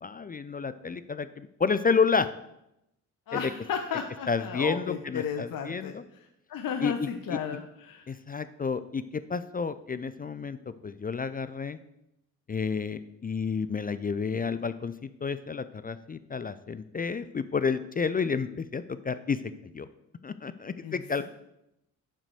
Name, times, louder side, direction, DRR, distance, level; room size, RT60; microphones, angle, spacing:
voice 1, 0.0-2.3 3.3-3.4 4.3-6.0 6.8-7.4 8.1-11.8 12.5-14.9 15.2-19.4 19.7-19.9 20.2-21.2, left 5 dB, 20° left, 13 dB, 0.4 m, -30 dB
voice 2, 3.3-5.9 6.5-8.1 20.8-21.2, left 7 dB, 50° left, 5 dB, 0.9 m, -34 dB
6.7 x 5.9 x 6.2 m, 0.83 s
hypercardioid pair, 40°, 44 cm